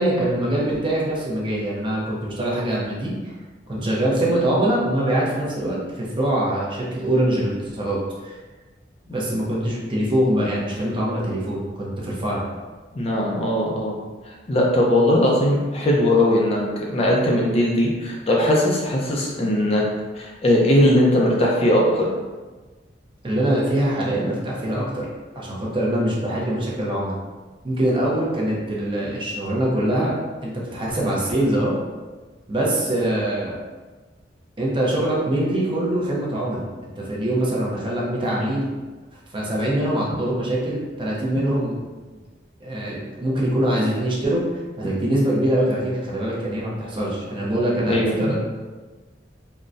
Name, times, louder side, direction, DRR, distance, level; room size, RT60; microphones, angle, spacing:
voice 1, 0.0-3.3 3.7-8.4 9.1-12.5 23.2-25.1 25.3-27.2 27.6-31.7 32.5-33.6 34.6-38.7 39.3-41.7 42.6-44.4 44.8-48.4, right 1 dB, 30° right, -5 dB, 0.7 m, -23 dB
voice 2, 13.0-14.0 14.5-19.8 20.1-22.1 38.4-38.5 47.9-48.4, left 1 dB, 35° left, -2 dB, 0.5 m, -19 dB
3.8 x 2.1 x 2.5 m, 1.3 s
head